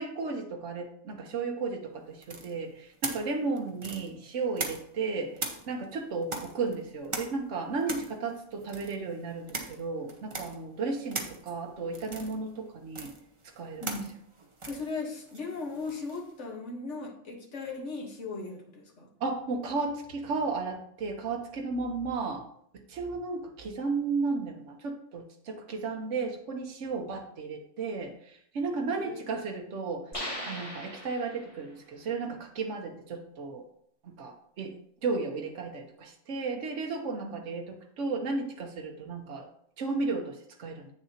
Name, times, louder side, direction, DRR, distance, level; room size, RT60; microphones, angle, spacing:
voice 1, 0.0-5.3 5.7-13.1 13.6-13.8 19.2-22.4 22.9-28.1 28.5-30.0 30.5-33.6 34.0-34.7 35.0-39.5 39.8-40.9, right 4 dB, 70° right, 2 dB, 1.3 m, -34 dB
sound 1, 2.2-5.0 5.4-16.3, right 3 dB, 30° right, 0.8 m, -40 dB
voice 2, 13.8-14.1 14.7-19.1 28.8-29.3 37.1-37.3, left 3 dB, 65° left, 1 dB, 1.7 m, -38 dB
sound 2, 30.1-31.7, equal, 25° left, 3.2 m, -39 dB
8.4 x 6.7 x 2.9 m, 0.66 s
omnidirectional pair, 1.3 m